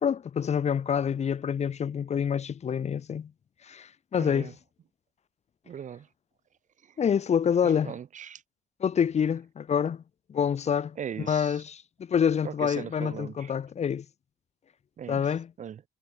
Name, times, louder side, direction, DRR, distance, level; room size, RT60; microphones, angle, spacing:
voice 1, 0.0-3.3 3.6-4.5 7.0-7.9 8.8-10.0 10.3-11.0 11.3-14.1 15.1-15.5, left 7 dB, 40° left, 2.4 m, -27 dB
voice 2, 4.1-4.5 5.6-6.1 6.8-7.0 7.6-8.4 11.0-11.6 12.4-13.5 15.0-15.8, right 8 dB, 45° right, 4.8 m, -39 dB
cardioid pair, 110°, 17 cm